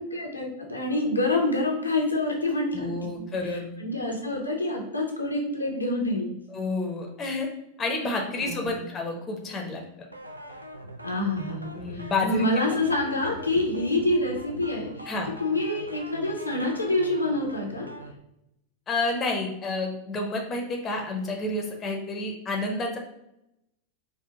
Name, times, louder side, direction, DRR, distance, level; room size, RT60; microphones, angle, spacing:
voice 1, 0.0-6.4 8.4-8.9 11.0-15.1 15.4-17.9, left 2 dB, 85° left, -1 dB, 0.7 m, -27 dB
voice 2, 2.7-3.7 6.5-7.5 7.8-9.8 11.7-12.4 13.5-13.6 15.1-15.3 18.9-23.0, left 2 dB, 25° left, 2 dB, 0.7 m, -29 dB
sound 1, 10.1-18.1, right 1 dB, 85° right, 0.4 m, -42 dB
4.1 x 2.3 x 2.8 m, 0.84 s
figure-of-eight pair, 90°, 0 cm